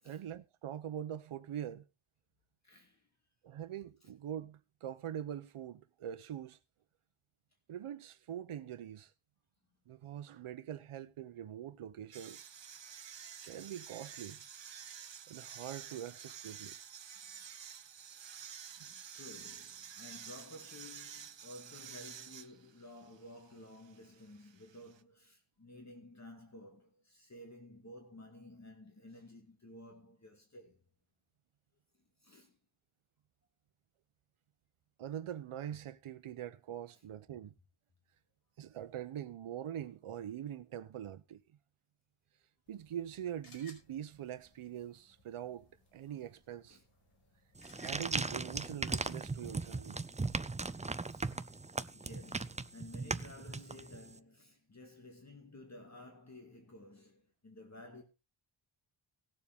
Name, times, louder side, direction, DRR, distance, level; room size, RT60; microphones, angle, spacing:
voice 1, 0.0-1.8 3.4-6.6 7.7-9.1 9.9-12.5 13.4-14.4 15.3-16.8 35.0-37.5 38.6-41.4 42.7-46.8 47.8-50.0, right 10 dB, 90° right, 0.8 m, -43 dB
voice 2, 2.6-3.1 4.0-4.1 17.2-17.4 17.8-18.5 18.9-30.8 32.2-32.6 46.7-46.8 51.0-51.4 51.9-58.0, left 1 dB, 35° left, 2.3 m, -54 dB
sound 1, 12.1-25.0, right 8 dB, 60° right, 1.0 m, -50 dB
sound 2, 42.7-49.5, left 3 dB, 50° left, 5.1 m, -63 dB
sound 3, 47.6-54.1, right 3 dB, 15° right, 0.5 m, -38 dB
18.5 x 7.1 x 3.5 m
wide cardioid pair, 115°, 49 cm